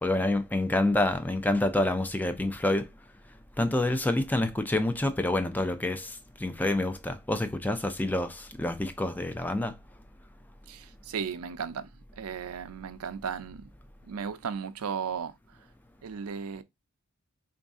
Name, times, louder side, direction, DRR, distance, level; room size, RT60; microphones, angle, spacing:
voice 1, 0.0-2.9 3.6-9.8, left 1 dB, 10° left, 0.4 m, -27 dB
voice 2, 10.7-11.9 12.2-13.6 14.1-15.3 16.0-16.6, right 6 dB, 80° right, 0.5 m, -35 dB
3.9 x 2.6 x 3.5 m
head